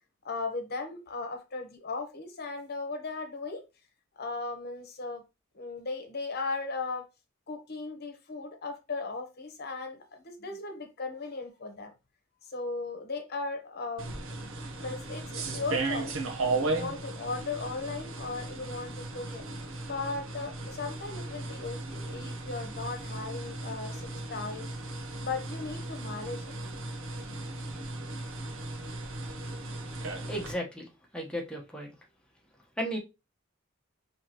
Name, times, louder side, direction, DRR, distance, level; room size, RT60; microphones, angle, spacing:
voice 1, 0.2-3.6 4.2-5.2 5.5-7.0 7.5-11.9 12.5-14.1 14.8-16.1 16.6-19.5 19.9-24.7 25.2-26.4, left 3 dB, 50° left, 1.0 m, -37 dB
sound 1, 14.0-30.5, right 2 dB, 70° right, 0.8 m, -36 dB
voice 2, 30.3-32.0 32.8-33.0, equal, 5° left, 1.0 m, -35 dB
4.6 x 3.0 x 2.9 m
head